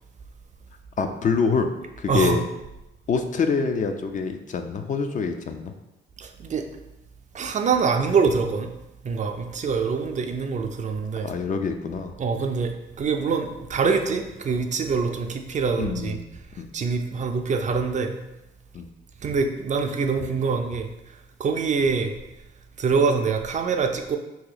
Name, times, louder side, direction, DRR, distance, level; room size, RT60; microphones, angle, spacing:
voice 1, 1.0-1.7 2.0-2.4 3.1-5.7 11.2-12.1 15.8-16.2 16.6-16.7 18.7-18.9, left 5 dB, 40° left, 6 dB, 0.4 m, -25 dB
voice 2, 2.1-2.4 6.2-6.6 7.3-8.7 9.0-11.3 12.2-16.2 16.7-18.1 19.2-20.9 21.4-22.1 22.8-24.2, right 5 dB, 40° right, 5 dB, 0.4 m, -24 dB
2.8 x 2.7 x 3.9 m, 0.94 s
cardioid pair, 90°, 20 cm